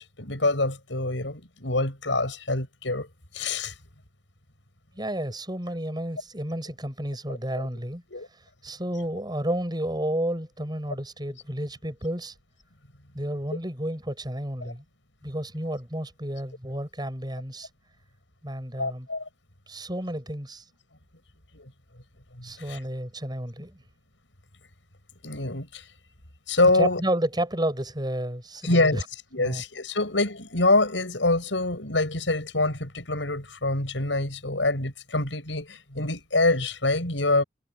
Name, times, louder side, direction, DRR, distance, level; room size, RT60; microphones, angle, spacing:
voice 1, 0.0-3.1 3.3-3.7 7.6-7.7 8.1-8.3 14.6-14.7 18.8-19.3 21.5-21.7 22.4-22.8 25.2-25.8 26.5-27.0 28.6-29.0 29.3-37.4, left 2 dB, 85° left, 6.9 m, -25 dB
voice 2, 4.9-8.0 8.6-12.3 13.1-14.8 15.2-17.7 18.4-19.1 19.7-20.6 22.4-23.8 26.8-29.0 29.4-29.6, right 1 dB, 25° right, 7.4 m, -31 dB
head